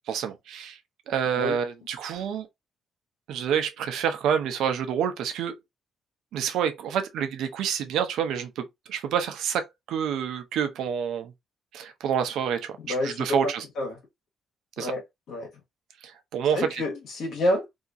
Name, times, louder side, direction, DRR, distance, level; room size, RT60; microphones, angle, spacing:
voice 1, 0.1-0.8 1.1-2.5 3.3-5.5 6.3-11.3 11.7-13.6 14.8-14.9 16.0-16.8, right 8 dB, 80° right, 0.6 m, -28 dB
voice 2, 12.8-14.0 14.8-15.0 15.3-15.5 16.5-17.6, left 1 dB, 75° left, 1.3 m, -28 dB
2.8 x 2.4 x 2.6 m
cardioid pair, 90°, 0 cm